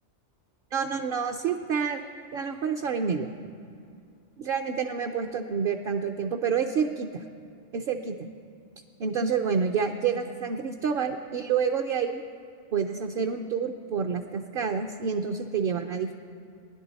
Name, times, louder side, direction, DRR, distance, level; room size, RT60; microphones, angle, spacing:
voice 1, 0.7-2.0 2.3-3.3 4.4-7.2 7.7-8.3 9.0-12.2 12.7-16.1, right 6 dB, 60° right, 5 dB, 0.8 m, -28 dB
20.5 x 11.0 x 4.1 m, 2.5 s
omnidirectional pair, 1.2 m